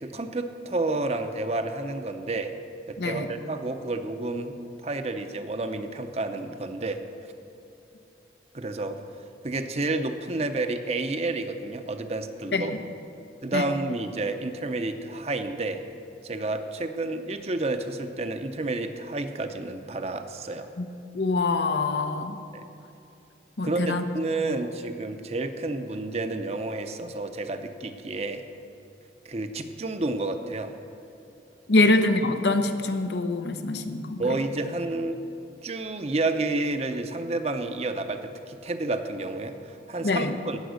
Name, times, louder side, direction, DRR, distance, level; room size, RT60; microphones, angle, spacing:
voice 1, 0.0-2.5 2.9-4.5 4.8-7.0 8.5-9.0 9.4-12.7 13.4-15.8 16.2-20.7 22.5-22.6 23.6-28.4 29.2-30.7 34.2-35.2 35.6-40.6, right 2 dB, 35° right, 7 dB, 0.7 m, -30 dB
voice 2, 21.1-22.4 23.6-24.0 24.4-24.5 31.7-34.2 40.0-40.4, left 2 dB, 75° left, 7 dB, 0.8 m, -24 dB
17.5 x 7.2 x 6.4 m, 2.7 s
head